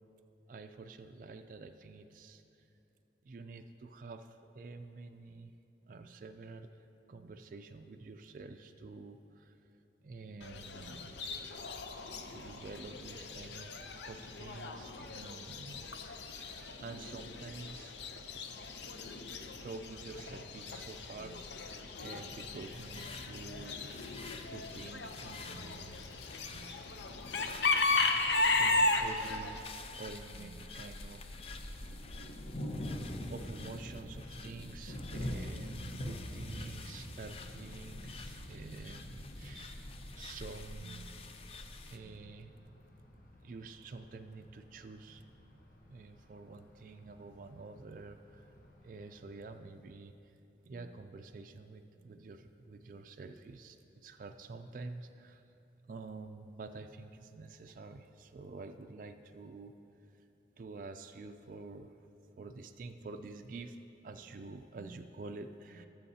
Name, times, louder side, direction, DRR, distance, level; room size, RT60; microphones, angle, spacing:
voice 1, 0.5-2.4 3.2-5.5 5.8-9.5 10.0-11.3 12.0-15.9 16.3-17.9 19.6-24.2 24.5-26.8 28.6-31.6 33.3-39.9 40.2-41.3 41.9-42.5 43.4-45.2 45.9-48.5 48.8-50.3 50.6-55.5 55.9-59.7 60.1-60.3 60.6-61.9 62.4-65.9, right 3 dB, 50° right, 6 dB, 0.3 m, -48 dB
Chicken rooster / Bird, 10.4-29.6, left 3 dB, 80° left, 0.6 m, -36 dB
sound 1, 22.3-42.0, left 3 dB, 35° left, 0.4 m, -49 dB
Thunder, 31.3-49.3, equal, 50° left, 1.0 m, -46 dB
18.0 x 7.4 x 2.8 m, 2.8 s
head